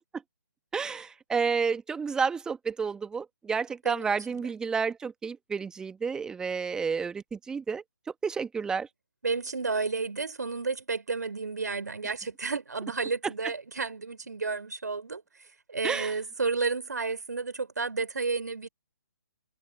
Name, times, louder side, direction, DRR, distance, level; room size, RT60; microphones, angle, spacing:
voice 1, 0.7-7.8 8.2-8.9 15.8-16.1, right 5 dB, 5° right, 1.4 m, -30 dB
voice 2, 3.8-4.4 9.2-15.2 15.7-18.7, right 4 dB, 65° right, 4.0 m, -31 dB
figure-of-eight pair, 135°, 10 cm